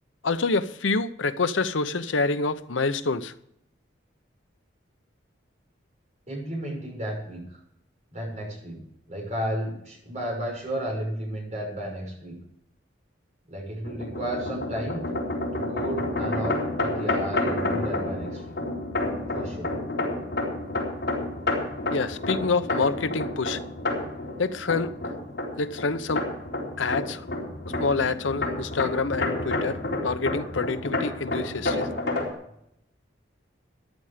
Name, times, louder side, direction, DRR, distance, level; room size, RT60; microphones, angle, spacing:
voice 1, 0.2-3.3 21.9-23.6 24.4-24.9 25.6-26.3 26.8-27.2 27.7-31.9, left 4 dB, 80° left, 12 dB, 0.8 m, -27 dB
voice 2, 6.3-7.6 8.1-8.8 9.1-12.4 13.5-15.0 15.5-18.6 19.3-19.7, right 1 dB, 35° right, -1 dB, 6.3 m, -33 dB
sound 1, 13.8-32.3, left 2 dB, 60° left, 4.1 m, -30 dB
14.5 x 10.5 x 5.0 m, 0.74 s
head